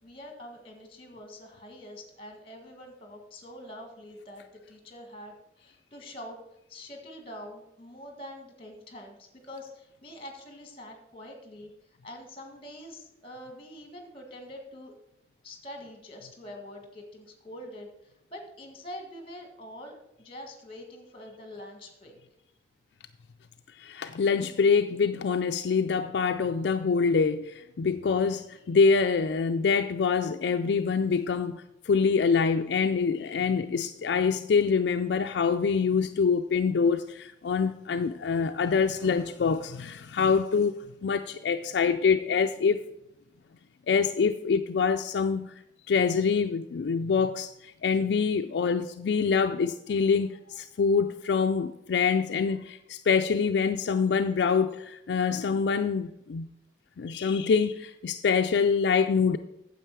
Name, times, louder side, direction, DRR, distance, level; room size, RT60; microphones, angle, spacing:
voice 1, 0.0-6.4 6.7-11.7 12.0-14.9 15.4-22.2, left 1 dB, 30° left, 1.7 m, -45 dB
voice 2, 23.8-42.8 43.9-45.5 45.9-56.5 57.0-59.4, left 5 dB, 75° left, 0.4 m, -25 dB
9.1 x 7.4 x 4.6 m
head